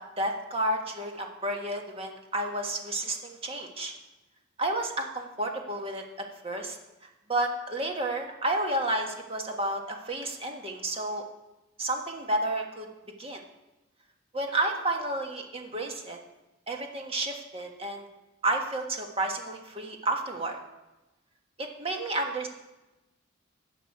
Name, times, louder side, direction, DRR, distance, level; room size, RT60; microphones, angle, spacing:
voice 1, 0.0-3.9 4.6-6.0 6.4-6.8 7.3-11.2 11.8-12.9 13.2-13.4 14.3-16.2 16.7-18.0 18.4-20.6 21.6-22.5, right 1 dB, 30° right, 2 dB, 1.5 m, -31 dB
14.5 x 8.9 x 4.8 m, 1.0 s
head